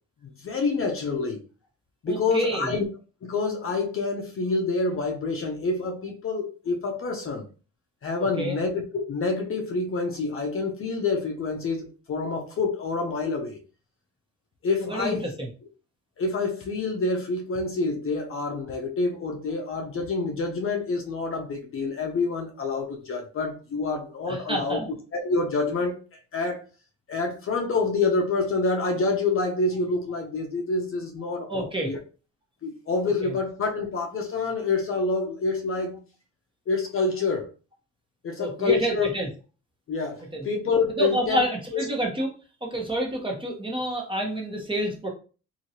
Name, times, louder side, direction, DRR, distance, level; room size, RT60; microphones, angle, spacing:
voice 1, 0.4-1.4 2.0-2.8 3.2-7.4 8.0-13.6 14.6-15.3 16.2-24.8 25.1-26.6 27.1-32.0 32.6-36.0 36.7-37.5 38.2-39.1 39.9-41.4 41.7-41.8, left 3 dB, 45° left, 0.7 m, -27 dB
voice 2, 2.1-2.7 8.4-8.5 14.8-15.5 24.3-24.9 31.5-31.9 33.2-33.3 38.4-39.3 40.3-40.4 41.0-42.3 42.6-45.1, right 1 dB, 15° right, 1.1 m, -28 dB
2.9 x 2.8 x 2.8 m
cardioid pair, 90°, 30 cm